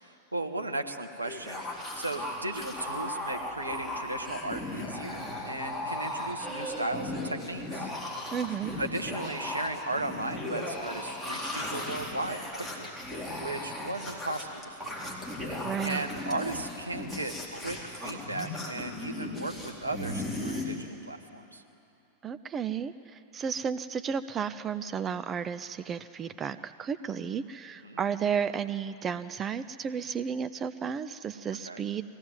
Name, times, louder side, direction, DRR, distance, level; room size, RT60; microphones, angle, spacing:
voice 1, 0.1-1.6 1.9-7.9 8.8-12.9 13.4-15.0 15.8-19.5 19.8-21.6 27.8-28.0 31.6-31.8, right 2 dB, 85° right, 5 dB, 1.3 m, -36 dB
sound 1, 1.2-20.6, left 1 dB, 5° right, 4.2 m, -36 dB
voice 2, 8.3-8.8 15.6-16.1 22.2-32.0, right 7 dB, 25° right, 12 dB, 0.5 m, -33 dB
22.5 x 16.5 x 9.4 m, 2.8 s
figure-of-eight pair, 90°, 0 cm